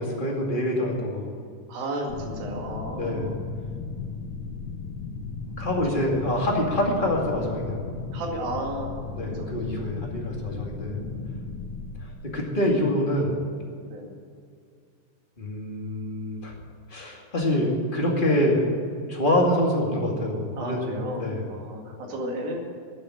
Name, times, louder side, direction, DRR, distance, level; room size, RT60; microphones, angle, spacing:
voice 1, 0.0-1.3 2.9-3.3 5.6-7.8 9.1-11.0 12.2-13.4 15.4-16.5 16.9-18.8 19.1-21.4, left 1 dB, 20° left, -1 dB, 1.7 m, -26 dB
voice 2, 1.7-3.5 6.1-6.2 8.1-9.5 11.0-11.4 13.9-14.2 20.6-22.6, right 1 dB, 80° right, 0 dB, 3.9 m, -34 dB
sound 1, 2.1-12.1, left 4 dB, 70° left, 2.3 m, -35 dB
12.5 x 7.6 x 9.9 m, 2.2 s
omnidirectional pair, 4.1 m